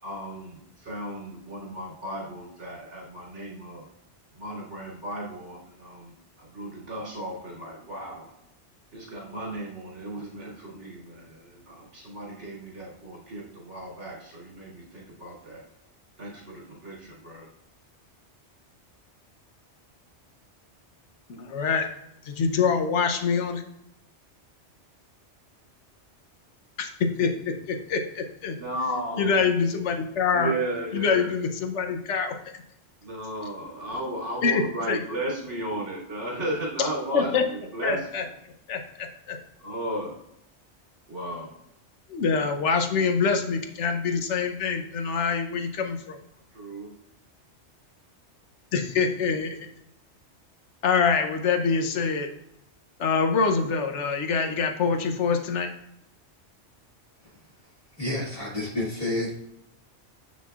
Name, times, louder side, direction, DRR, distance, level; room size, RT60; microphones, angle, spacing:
voice 1, 0.0-3.9 4.4-8.3 8.9-15.6 16.2-17.5 28.5-29.4 30.3-31.3 33.0-38.1 39.6-40.1 41.1-41.5 46.5-46.9, right 1 dB, 75° right, -5 dB, 3.1 m, -35 dB
voice 2, 21.3-21.9 22.2-23.6 26.8-26.9 27.2-28.6 29.2-30.5 30.9-32.3 34.4-34.6 34.9-35.0 36.8-36.9 37.1-37.4 37.8-38.2 38.7-39.4 42.1-46.2 48.7-49.6 50.8-52.3 53.0-55.7, left 5 dB, 80° left, 5 dB, 1.1 m, -25 dB
voice 3, 58.0-59.3, left 1 dB, 30° left, -6 dB, 2.5 m, -29 dB
7.4 x 6.1 x 2.4 m, 0.80 s
omnidirectional pair, 1.2 m